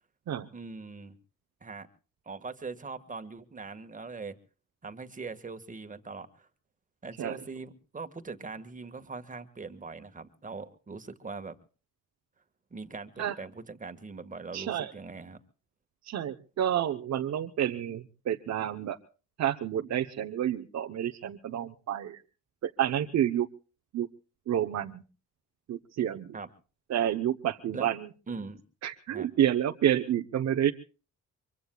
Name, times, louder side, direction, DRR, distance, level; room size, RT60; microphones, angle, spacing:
voice 1, 0.5-1.2 1.6-1.9 2.2-4.3 4.8-6.5 7.0-11.5 12.7-15.4 26.3-26.5 27.7-27.9 28.3-28.6 29.1-29.3, right 4 dB, 25° right, 8 dB, 1.8 m, -41 dB
voice 2, 14.5-14.9 16.0-19.0 19.4-22.2 22.6-23.5 23.9-24.1 24.5-25.0 25.7-26.4 26.9-28.1 28.8-30.7, right 10 dB, 60° right, 3 dB, 1.0 m, -29 dB
24.0 x 24.0 x 2.4 m, 0.37 s
cardioid pair, 90°, 30 cm